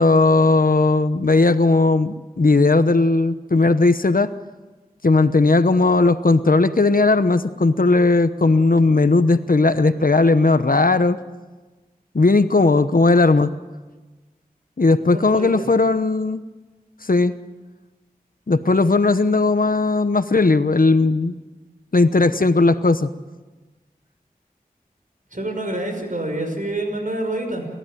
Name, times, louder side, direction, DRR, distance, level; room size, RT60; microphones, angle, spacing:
voice 1, 0.0-4.3 5.0-11.2 12.1-13.5 14.8-16.4 17.0-17.3 18.5-21.3 21.9-23.1, left 3 dB, 65° left, 12 dB, 1.0 m, -17 dB
voice 2, 15.1-15.7 25.3-27.7, right 1 dB, 60° right, 3 dB, 6.1 m, -27 dB
28.5 x 14.5 x 9.1 m, 1.3 s
wide cardioid pair, 40°, 15 cm